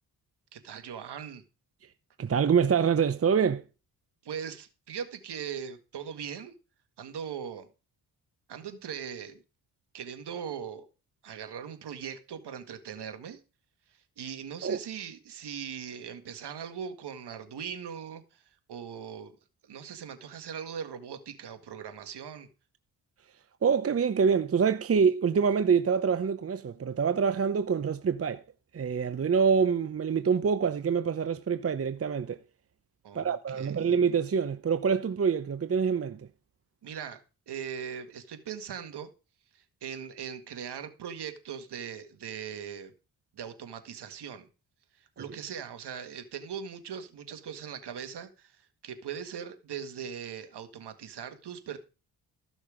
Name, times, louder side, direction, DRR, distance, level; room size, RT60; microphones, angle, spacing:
voice 1, 0.5-1.4 4.2-6.5 7.0-7.7 8.5-9.4 9.9-10.9 11.2-13.4 13.9-19.3 19.6-22.5 33.0-33.9 36.8-37.2 37.5-39.1 39.5-42.9 43.4-44.5 45.0-51.8, right 7 dB, 70° right, 1.9 m, -40 dB
voice 2, 2.2-3.6 14.6-14.8 23.6-28.4 28.7-32.4 33.1-36.3, right 6 dB, 35° right, 0.8 m, -26 dB
14.0 x 6.3 x 5.0 m
cardioid pair, 65°, 41 cm